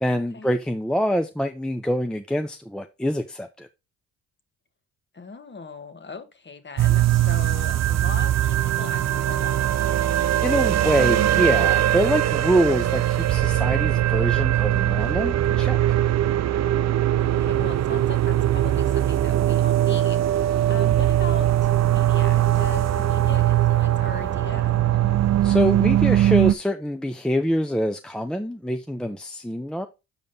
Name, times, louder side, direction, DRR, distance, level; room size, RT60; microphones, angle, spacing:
voice 1, 0.0-3.7 10.4-15.8 25.4-29.9, equal, ahead, 0.7 m, -25 dB
voice 2, 5.1-9.6 17.2-25.2, left 4 dB, 30° left, 1.4 m, -40 dB
sound 1, 6.8-26.5, right 12 dB, 50° right, 0.5 m, -21 dB
7.3 x 5.1 x 4.0 m
supercardioid pair, 60°, 35 cm